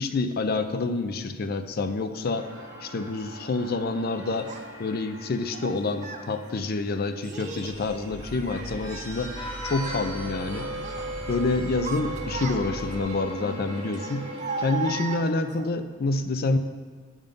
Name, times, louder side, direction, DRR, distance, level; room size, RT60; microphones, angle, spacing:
voice 1, 0.0-2.5 2.8-4.5 4.8-9.4 9.6-10.7 11.3-14.3 14.6-16.6, left 3 dB, 50° left, 9 dB, 0.5 m, -27 dB
sound 1, 2.3-15.2, right 1 dB, 85° right, 1.7 m, -39 dB
Child speech kid speaking, 4.5-4.6 5.5-6.3 7.2-7.8 8.2-9.5 9.8-10.1 10.5-11.1 11.6-12.9 13.9-15.7, right 4 dB, 40° right, 0.5 m, -36 dB
Vehicle horn car horn honking / Traffic noise roadway noise, 7.7-13.0, equal, 20° left, 0.7 m, -38 dB
10.5 x 3.7 x 5.3 m, 1.5 s
head